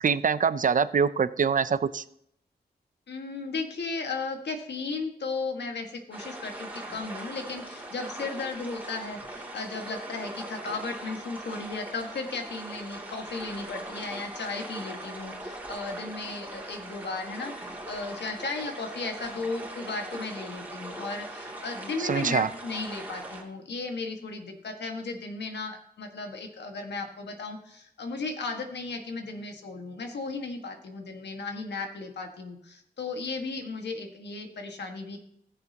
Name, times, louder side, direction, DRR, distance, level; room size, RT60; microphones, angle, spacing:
voice 1, 0.0-2.0 22.0-22.5, right 6 dB, 50° right, 14 dB, 0.5 m, -24 dB
voice 2, 3.1-35.2, left 3 dB, 85° left, 4 dB, 1.7 m, -35 dB
sound 1, 6.1-23.4, right 1 dB, 10° right, 2.7 m, -40 dB
19.5 x 6.8 x 2.9 m, 0.72 s
wide cardioid pair, 85°, 17 cm